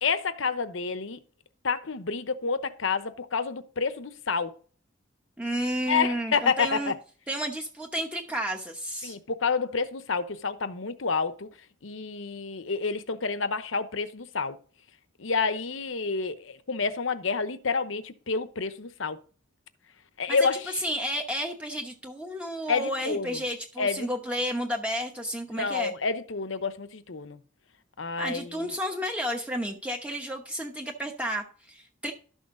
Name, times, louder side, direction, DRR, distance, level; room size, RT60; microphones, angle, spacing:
voice 1, 0.0-1.2 1.6-4.5 5.9-6.9 9.0-11.5 11.8-14.6 15.2-19.2 20.2-20.7 22.7-23.4 23.8-24.1 25.5-27.4 28.0-28.7, left 5 dB, 70° left, 0.9 m, -29 dB
voice 2, 5.4-6.9 7.3-9.2 20.3-20.4 20.8-25.9 28.2-32.1, equal, 5° right, 1.0 m, -32 dB
12.5 x 6.5 x 3.8 m
head